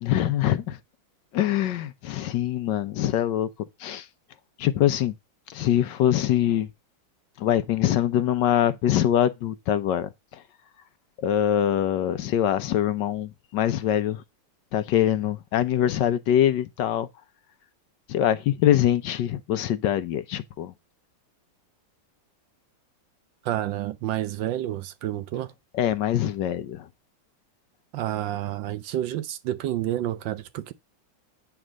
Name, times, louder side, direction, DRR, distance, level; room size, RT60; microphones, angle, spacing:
voice 1, 0.0-0.8 1.3-3.5 3.8-4.1 4.6-5.1 5.5-6.7 7.4-10.4 11.2-14.2 14.7-17.1 18.1-20.7 25.7-26.9, left 11 dB, 70° left, 1.2 m, -24 dB
voice 2, 23.4-25.5 27.9-30.7, right 13 dB, 75° right, 1.3 m, -29 dB
8.9 x 3.4 x 6.2 m
omnidirectional pair, 2.1 m